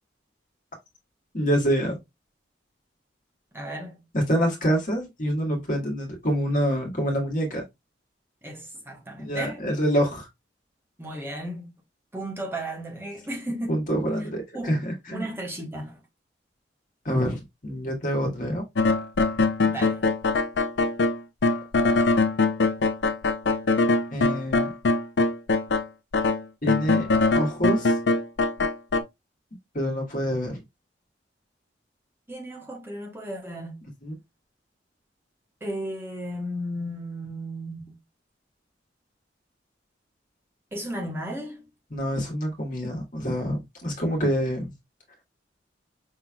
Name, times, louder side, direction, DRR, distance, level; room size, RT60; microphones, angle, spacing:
voice 1, 1.3-2.0 4.1-7.6 9.2-10.3 13.7-15.2 17.0-18.6 24.1-24.7 26.6-28.0 29.7-30.6 34.0-34.1 41.9-44.7, equal, 45° left, 1.5 m, -26 dB
voice 2, 3.5-4.0 8.4-9.6 11.0-11.7 12.1-13.9 14.5-14.8 15.1-16.0 19.7-20.0 32.3-33.9 35.6-37.9 40.7-41.6, right 1 dB, 15° right, 1.0 m, -34 dB
sound 1, 18.8-25.9 26.1-29.0, left 3 dB, 70° left, 0.5 m, -22 dB
5.5 x 3.4 x 2.2 m
head